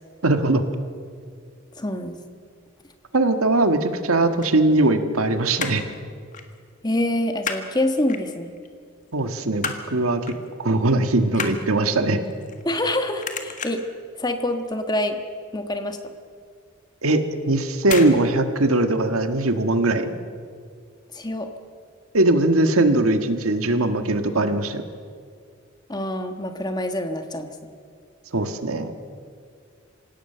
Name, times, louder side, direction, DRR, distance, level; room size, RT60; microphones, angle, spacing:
voice 1, 0.2-0.6 3.1-5.8 9.1-10.2 10.6-12.2 17.0-20.1 22.1-24.8 28.3-28.9, right 2 dB, 85° right, 8 dB, 1.6 m, -20 dB
voice 2, 1.8-2.2 6.8-8.5 12.6-13.8 14.2-15.2 15.5-16.0 21.1-21.5 25.9-27.5, left 1 dB, 20° left, 6 dB, 1.4 m, -26 dB
sound 1, 4.4-5.2 5.5-5.9 6.3-6.5 6.8-7.7 8.1-8.7 9.1-9.9 10.3-10.5 10.8-12.9 13.2-14.0 14.4-14.7 15.0-15.1 15.4-15.5 16.0-16.1 16.9-17.2 17.8-18.2 18.4-18.5, left 5 dB, 35° left, 1.7 m, -32 dB
26.5 x 17.5 x 6.8 m, 2.1 s
head